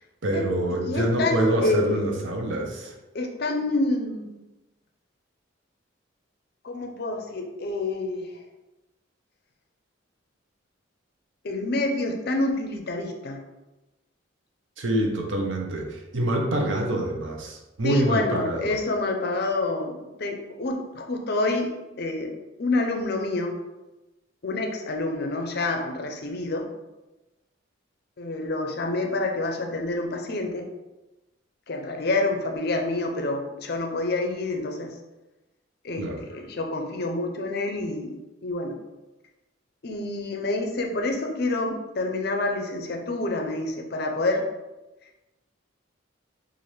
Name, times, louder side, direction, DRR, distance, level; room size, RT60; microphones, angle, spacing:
voice 1, 0.2-2.9 14.8-18.8 36.0-36.2, right 1 dB, 70° right, 1 dB, 0.7 m, -26 dB
voice 2, 0.8-2.2 3.1-4.3 6.6-8.3 11.4-13.4 17.8-23.6 24.4-26.7 28.2-30.6 31.7-34.9 35.8-38.8 39.8-44.5, left 2 dB, 50° left, 3 dB, 0.5 m, -28 dB
3.2 x 2.5 x 4.2 m, 1.0 s
head